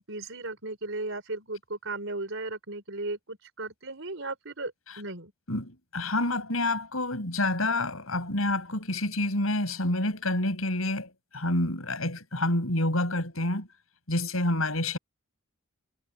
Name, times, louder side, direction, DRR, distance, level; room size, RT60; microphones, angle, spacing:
voice 1, 0.0-5.3, right 2 dB, 65° right, 5.3 m, -36 dB
voice 2, 5.5-13.7 14.1-15.0, left 1 dB, 80° left, 7.4 m, -28 dB
head